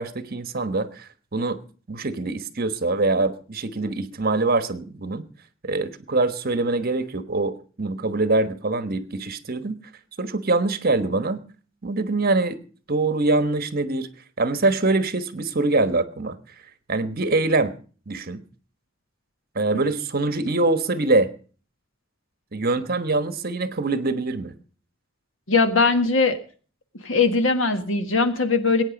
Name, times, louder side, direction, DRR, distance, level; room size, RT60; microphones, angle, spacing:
voice 1, 0.0-1.6 1.9-5.2 5.6-9.8 10.2-11.4 11.8-12.6 12.9-14.1 14.4-16.4 16.9-17.7 18.1-18.4 19.5-21.3 22.5-24.5, right 2 dB, 50° right, 11 dB, 1.2 m, -24 dB
voice 2, 25.5-26.4 27.0-28.8, left 4 dB, 75° left, 8 dB, 1.8 m, -20 dB
21.0 x 9.2 x 5.2 m, 0.41 s
head